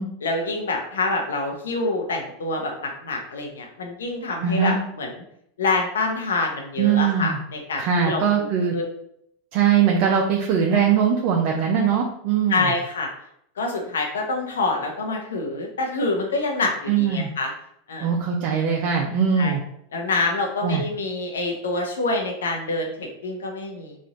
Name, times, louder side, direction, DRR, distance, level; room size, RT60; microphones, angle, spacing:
voice 1, 0.2-5.2 5.6-8.2 8.7-8.8 12.5-13.1 13.6-17.5 17.9-18.1 19.4-19.5 19.9-24.0, left 3 dB, 90° left, 1 dB, 0.7 m, -26 dB
voice 2, 4.4-4.8 6.8-7.4 7.8-8.7 9.5-12.7 16.9-17.3 18.0-19.6 20.6-20.8, right 7 dB, 55° right, 1 dB, 0.6 m, -21 dB
3.1 x 2.6 x 3.8 m, 0.71 s
hypercardioid pair, 110°, 0 cm